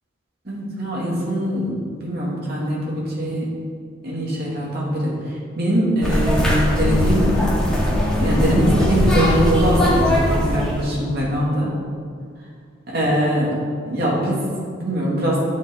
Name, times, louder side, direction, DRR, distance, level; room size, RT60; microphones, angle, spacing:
voice 1, 0.4-3.5 4.0-7.4 8.2-11.7 12.9-13.5 13.9-15.4, equal, 50° right, -5 dB, 2.6 m, -22 dB
sound 1, 6.0-10.9, left 1 dB, 5° left, 2.0 m, -20 dB
11.0 x 7.4 x 4.7 m, 2.1 s
head